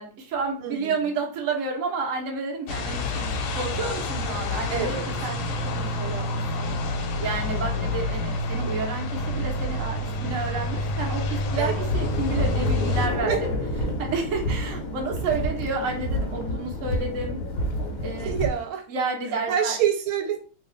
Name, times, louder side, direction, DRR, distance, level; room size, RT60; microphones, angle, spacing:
voice 1, 0.0-5.4 5.8-6.7 7.2-13.4 14.0-17.4 18.0-18.3 18.9-19.8, right 4 dB, 55° right, 1 dB, 1.0 m, -30 dB
voice 2, 0.6-1.0 4.7-5.0 7.5-7.9 11.6-11.9 13.2-13.4 18.2-18.9 19.5-20.4, right 8 dB, 85° right, 6 dB, 1.5 m, -27 dB
sound 1, 2.7-13.1, left 1 dB, 80° left, 1.5 m, -28 dB
sound 2, 11.9-18.5, left 1 dB, 60° left, 0.9 m, -28 dB
3.2 x 2.3 x 3.8 m, 0.38 s
omnidirectional pair, 2.2 m